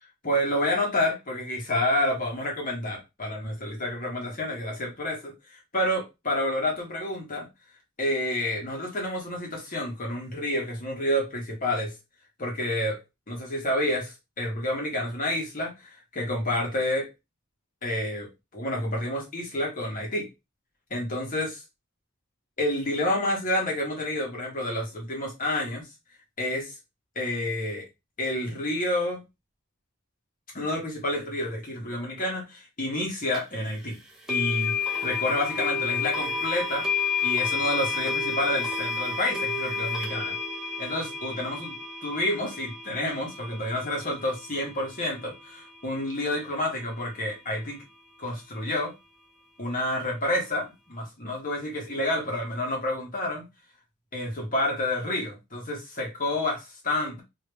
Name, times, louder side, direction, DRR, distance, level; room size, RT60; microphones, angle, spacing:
voice 1, 0.2-7.5 8.0-11.9 12.4-13.0 13.3-17.1 17.8-20.3 20.9-21.5 22.6-25.9 26.4-26.7 27.1-27.9 28.2-29.2 30.5-34.0 34.3-36.9 37.2-40.4 40.8-41.7 42.0-47.8 48.2-48.9 49.6-53.5 54.1-57.2, left 1 dB, 40° left, 1.4 m, -29 dB
sound 1, 33.3-33.4 34.3-45.3, left 5 dB, 5° right, 0.7 m, -30 dB
3.2 x 2.9 x 3.3 m
head